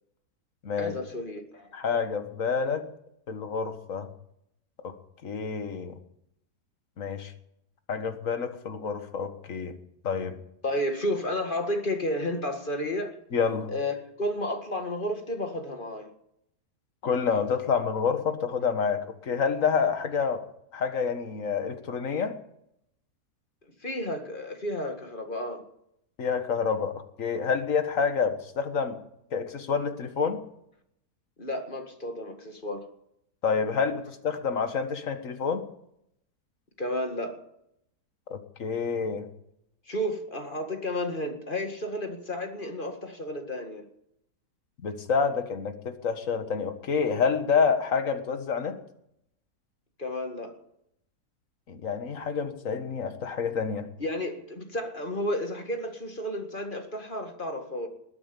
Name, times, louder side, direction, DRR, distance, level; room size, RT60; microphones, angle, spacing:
voice 1, 0.8-1.7 10.6-13.2 13.7-16.1 23.8-25.6 31.4-32.9 36.8-37.4 39.9-43.9 50.0-50.6 54.0-57.9, left 1 dB, 30° left, 5 dB, 2.1 m, -32 dB
voice 2, 1.7-2.9 3.3-4.1 4.8-4.9 5.2-6.0 7.0-7.3 7.9-9.8 10.0-10.3 13.3-13.7 17.0-20.4 20.7-22.4 26.2-29.0 29.3-30.4 33.4-35.6 38.3-39.3 44.8-48.8 51.7-53.9, left 6 dB, 55° left, 8 dB, 1.9 m, -28 dB
21.0 x 9.5 x 7.0 m, 0.76 s
omnidirectional pair, 1.7 m